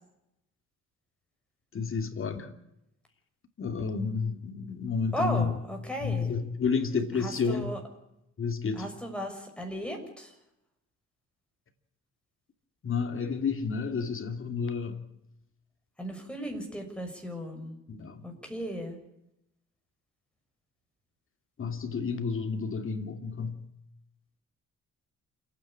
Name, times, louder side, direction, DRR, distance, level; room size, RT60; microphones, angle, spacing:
voice 1, 1.7-2.5 3.6-5.6 6.0-7.7 8.4-8.9 12.8-15.0 17.9-18.2 21.6-23.6, left 5 dB, 45° left, 2.7 m, -30 dB
voice 2, 5.1-6.3 7.1-7.8 8.7-10.3 16.0-17.8 18.2-19.0, equal, 5° left, 6.5 m, -36 dB
28.5 x 9.6 x 9.9 m
cardioid pair, 90°, 30 cm